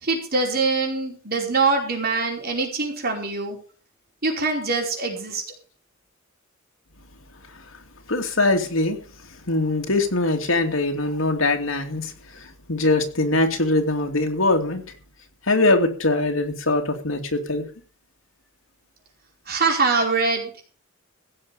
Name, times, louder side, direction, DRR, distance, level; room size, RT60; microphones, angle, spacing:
voice 1, 0.0-3.6 4.2-5.4 19.5-20.6, right 3 dB, 50° right, 1 dB, 4.8 m, -23 dB
voice 2, 8.1-9.0 9.3-14.8 15.4-17.7, left 2 dB, 85° left, 3 dB, 2.7 m, -22 dB
16.0 x 7.1 x 7.0 m, 0.39 s
head